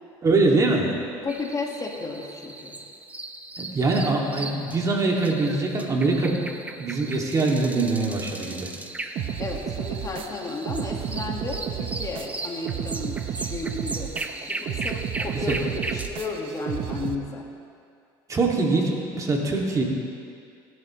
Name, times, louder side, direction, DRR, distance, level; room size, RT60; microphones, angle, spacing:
voice 1, 0.2-0.9 3.6-6.4 6.8-8.7 15.3-15.6 18.3-19.8, right 3 dB, 30° right, -1 dB, 2.4 m, -23 dB
voice 2, 1.2-2.8 9.4-17.5, left 3 dB, 30° left, 1 dB, 1.9 m, -33 dB
sound 1, 1.3-16.1, right 2 dB, 15° right, 1.0 m, -37 dB
sound 2, 9.2-17.2, right 9 dB, 55° right, 1.0 m, -32 dB
23.0 x 11.0 x 3.2 m, 2.4 s
supercardioid pair, 90°, 11 cm